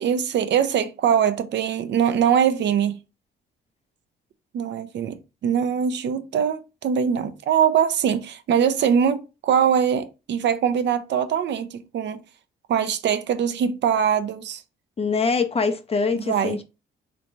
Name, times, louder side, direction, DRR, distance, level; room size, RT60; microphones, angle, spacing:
voice 1, 0.0-3.0 4.5-12.2 12.7-14.6 16.1-16.6, right 8 dB, 60° right, 0.5 m, -22 dB
voice 2, 15.0-16.6, left 4 dB, 30° left, 0.5 m, -23 dB
3.2 x 3.1 x 2.7 m
cardioid pair, 90°, 20 cm